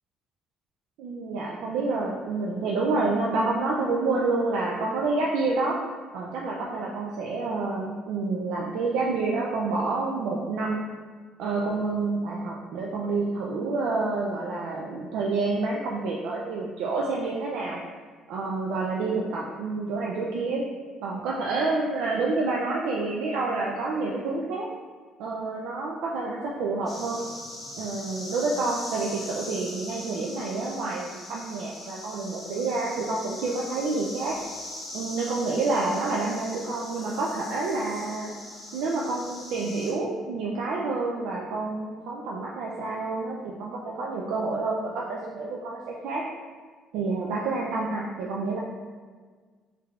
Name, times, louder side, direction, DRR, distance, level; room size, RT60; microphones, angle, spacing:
voice 1, 1.0-5.8 6.1-10.9 11.4-17.8 18.3-20.6 21.0-24.7 25.2-27.2 27.8-34.3 34.9-38.3 38.7-46.2 46.9-48.6, right 3 dB, 80° right, -3 dB, 0.4 m, -28 dB
sound 1, 26.9-39.9, left 1 dB, 25° left, 0.7 m, -41 dB
3.3 x 3.2 x 2.4 m, 1.5 s
cardioid pair, 140°, 0 cm